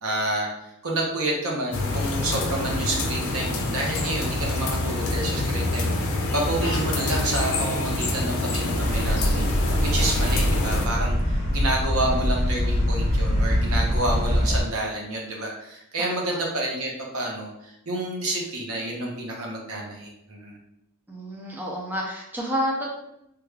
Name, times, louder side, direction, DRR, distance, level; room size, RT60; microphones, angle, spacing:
voice 1, 0.0-0.5 0.8-6.0 6.3-9.5 9.8-20.6, right 1 dB, 80° right, -1 dB, 0.8 m, -29 dB
sound 1, 1.7-10.9, left 2 dB, 75° left, 0.6 m, -26 dB
sound 2, 8.8-14.6, equal, 30° left, 0.8 m, -23 dB
voice 2, 10.0-10.3 16.0-16.4 21.1-23.0, equal, 10° right, -2 dB, 0.4 m, -30 dB
3.4 x 2.3 x 3.2 m, 0.81 s
head